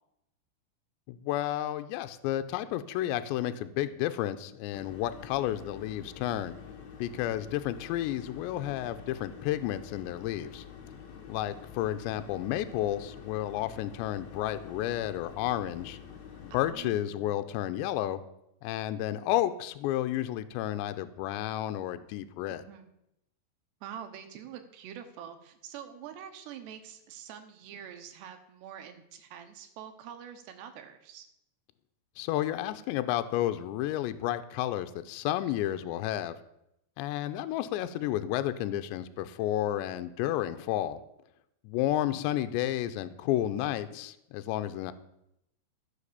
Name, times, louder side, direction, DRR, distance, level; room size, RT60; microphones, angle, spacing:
voice 1, 1.1-6.6 7.0-10.6 11.3-16.0 16.4-18.2 18.6-22.6 32.2-36.4 37.0-41.0 41.6-44.9, left 13 dB, 80° left, 10 dB, 2.8 m, -31 dB
sound 1, 4.7-16.7, left 7 dB, 55° left, 2.2 m, -47 dB
voice 2, 16.5-17.4 22.5-22.9 23.8-31.3 35.5-36.0, right 9 dB, 70° right, 7 dB, 3.1 m, -46 dB
15.0 x 6.6 x 7.0 m, 0.80 s
omnidirectional pair, 5.3 m